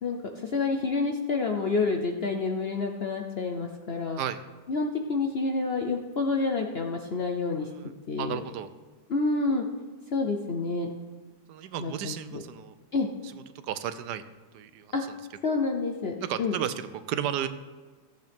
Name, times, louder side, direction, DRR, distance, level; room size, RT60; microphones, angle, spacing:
voice 1, 0.0-4.2 4.7-7.7 8.1-8.4 9.1-9.7 10.1-10.9 11.8-12.4 12.9-13.1 14.9-15.0 15.4-16.6, left 3 dB, 55° left, 3 dB, 0.7 m, -28 dB
voice 2, 8.2-8.7 9.5-9.6 11.5-12.7 13.6-14.2 14.5-14.9 15.5-15.6 16.2-17.5, right 10 dB, 75° right, 12 dB, 1.1 m, -33 dB
14.0 x 7.8 x 3.5 m, 1.3 s
omnidirectional pair, 1.9 m